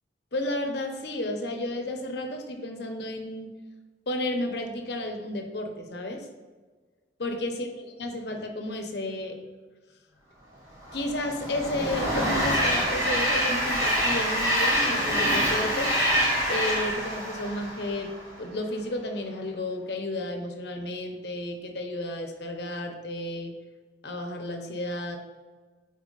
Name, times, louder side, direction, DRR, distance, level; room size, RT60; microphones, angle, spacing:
voice 1, 0.3-3.6 4.1-6.3 7.2-9.4 10.9-15.9 16.5-18.1 18.4-23.5 24.0-25.2, left 1 dB, 65° left, 4 dB, 0.8 m, -32 dB
Train, 10.8-18.3, equal, 20° right, 1.4 m, -26 dB
9.2 x 4.3 x 2.5 m, 1.4 s
head